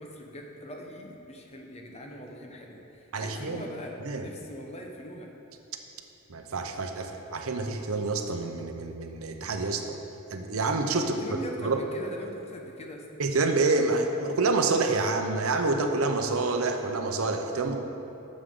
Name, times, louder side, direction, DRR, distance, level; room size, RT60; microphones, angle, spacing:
voice 1, 0.0-5.3 11.0-13.1, equal, 30° left, 1 dB, 0.9 m, -41 dB
voice 2, 3.1-3.6 4.0-4.3 6.3-10.0 10.3-11.1 11.6-11.8 13.2-17.8, right 3 dB, 75° right, 5 dB, 0.7 m, -27 dB
11.5 x 7.3 x 3.8 m, 2.9 s
head